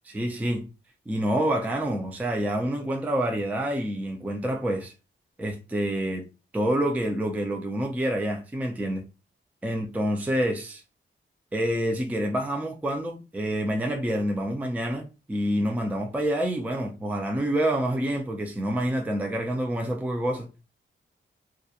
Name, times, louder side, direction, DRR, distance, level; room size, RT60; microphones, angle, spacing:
voice 1, 0.1-0.7 1.1-4.9 5.4-6.2 6.5-9.1 9.6-10.8 11.5-20.5, right 1 dB, 5° right, 0.4 m, -27 dB
2.4 x 2.0 x 2.6 m
wide cardioid pair, 130°, 21 cm